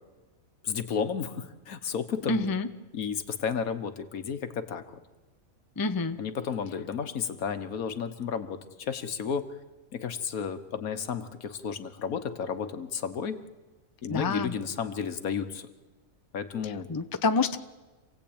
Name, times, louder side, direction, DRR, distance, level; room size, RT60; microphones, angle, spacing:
voice 1, 0.6-2.5 2.9-5.0 6.2-9.5 9.9-13.4 14.0-15.7 16.3-16.9, left 7 dB, 75° left, 10 dB, 1.6 m, -32 dB
voice 2, 2.3-2.7 5.8-6.2 14.1-14.5 16.9-17.6, left 4 dB, 20° left, 9 dB, 0.6 m, -27 dB
27.0 x 16.5 x 8.8 m, 1.2 s
omnidirectional pair, 1.5 m